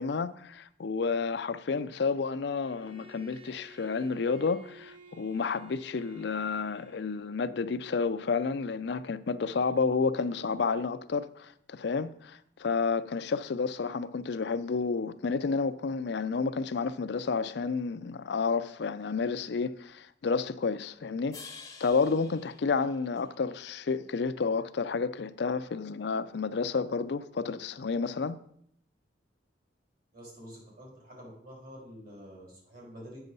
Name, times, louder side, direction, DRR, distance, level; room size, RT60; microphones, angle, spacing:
voice 1, 0.0-21.4 21.8-28.4, left 4 dB, 60° left, 0.5 m, -30 dB
Bowed string instrument, 2.6-7.4, right 1 dB, 30° right, 0.7 m, -53 dB
sound 1, 21.3-23.7, left 5 dB, 20° left, 0.8 m, -49 dB
voice 2, 30.1-33.2, equal, 50° right, 3.9 m, -48 dB
8.1 x 6.2 x 5.3 m
head